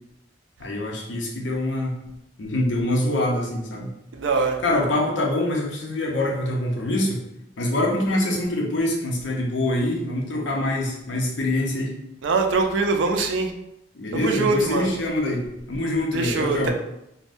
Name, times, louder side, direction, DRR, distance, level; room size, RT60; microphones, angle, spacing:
voice 1, 0.6-2.0 2.4-3.9 4.6-7.2 7.6-11.9 13.9-16.7, left 1 dB, 85° left, -1 dB, 0.7 m, -25 dB
voice 2, 4.1-4.6 12.2-13.5 14.1-14.9 16.1-16.7, right 4 dB, 90° right, 5 dB, 0.4 m, -23 dB
3.4 x 2.2 x 2.5 m, 0.84 s
head